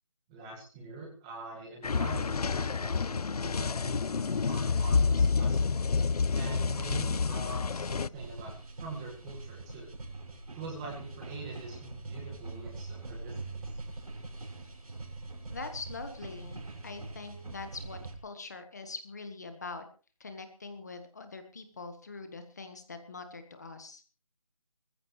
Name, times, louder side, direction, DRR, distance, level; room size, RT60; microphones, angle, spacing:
voice 1, 0.3-5.9 6.3-8.5 8.8-9.9 10.5-13.6, right 3 dB, 10° right, -1 dB, 1.8 m, -44 dB
sound 1, 1.8-8.1, left 4 dB, 85° left, 0.7 m, -29 dB
sound 2, 8.1-18.2, right 3 dB, 75° right, 6.2 m, -43 dB
voice 2, 15.5-19.8 20.2-24.0, left 3 dB, 30° left, 7 dB, 1.4 m, -43 dB
21.0 x 14.5 x 3.2 m, 0.36 s
figure-of-eight pair, 175°, 19 cm